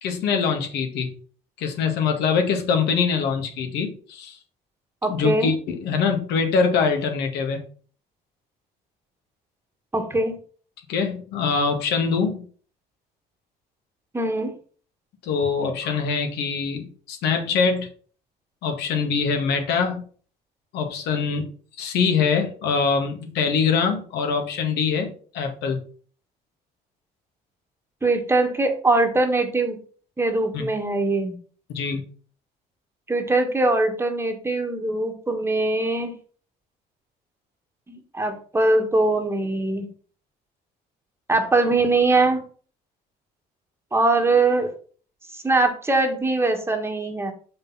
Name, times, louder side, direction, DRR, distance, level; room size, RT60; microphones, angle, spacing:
voice 1, 0.0-1.1 1.6-4.4 5.1-7.6 10.9-12.4 15.2-17.9 18.6-20.0 20.7-21.5 21.8-25.8 30.5-30.6 31.7-32.0, left 5 dB, 80° left, 4 dB, 1.8 m, -23 dB
voice 2, 5.0-5.5 9.9-10.4 14.1-14.5 28.0-29.8 30.2-31.4 33.1-36.1 37.9-39.9 41.3-42.4 43.9-44.7 45.3-47.3, right 2 dB, 15° right, 5 dB, 1.6 m, -22 dB
6.0 x 5.3 x 5.6 m, 0.42 s
cardioid pair, 110°, 17 cm